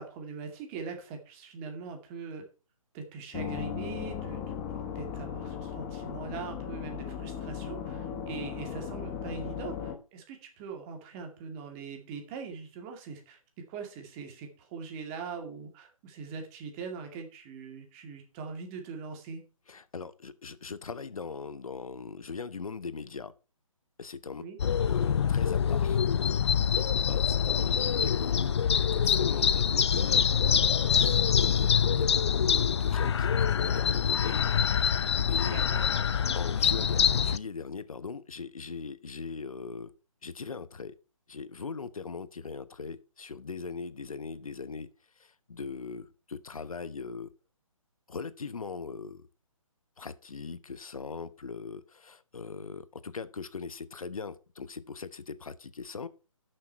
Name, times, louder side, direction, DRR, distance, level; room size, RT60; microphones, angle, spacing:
voice 1, 0.0-2.5 2.9-13.4 13.7-19.4 24.4-24.6 35.4-35.8, right 5 dB, 25° right, 2.3 m, -42 dB
sound 1, 3.3-10.0, left 8 dB, 20° left, 1.0 m, -37 dB
voice 2, 19.7-23.3 24.0-26.0 26.7-34.5 34.8-35.0 35.3-35.6 36.3-39.9 40.2-40.9 41.3-44.9 45.2-47.3 48.1-49.3 50.0-56.1, left 5 dB, 75° left, 1.0 m, -40 dB
sound 2, 24.6-37.4, left 7 dB, 50° left, 0.5 m, -25 dB
12.0 x 6.6 x 4.5 m
figure-of-eight pair, 145°, 18 cm